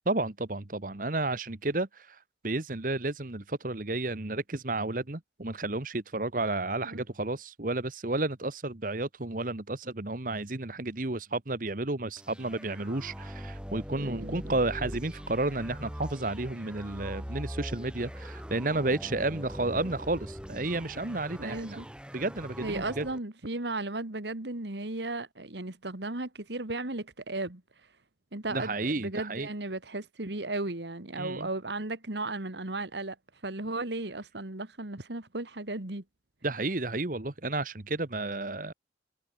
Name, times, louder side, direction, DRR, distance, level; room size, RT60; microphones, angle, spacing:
voice 1, 0.1-21.8 22.1-23.1 28.5-29.5 31.2-31.5 36.4-38.7, right 2 dB, 50° right, 1.3 m, -32 dB
sound 1, 12.2-23.2, equal, 5° right, 5.2 m, -42 dB
voice 2, 14.0-14.5 21.4-21.9 22.6-27.6 28.3-33.2 33.4-36.0, right 2 dB, 75° right, 2.2 m, -35 dB
head